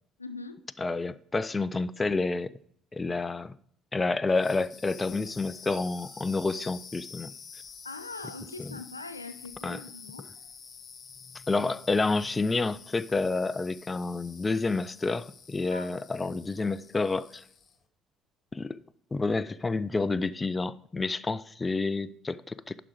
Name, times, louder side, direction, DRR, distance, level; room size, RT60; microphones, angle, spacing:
voice 1, 0.2-0.6 7.8-10.3 15.7-16.0 16.2-16.4, left 3 dB, 85° left, 0.5 m, -42 dB
voice 2, 0.8-2.5 2.9-3.5 3.9-7.3 8.6-8.8 9.6-9.8 11.5-17.4 18.5-18.8 19.1-22.8, left 3 dB, 20° left, 0.4 m, -29 dB
sound 1, 4.3-17.8, left 6 dB, 35° left, 1.3 m, -49 dB
sound 2, 5.7-7.5, right 1 dB, 55° right, 3.7 m, -52 dB
11.5 x 5.0 x 4.6 m
figure-of-eight pair, 50°, 0 cm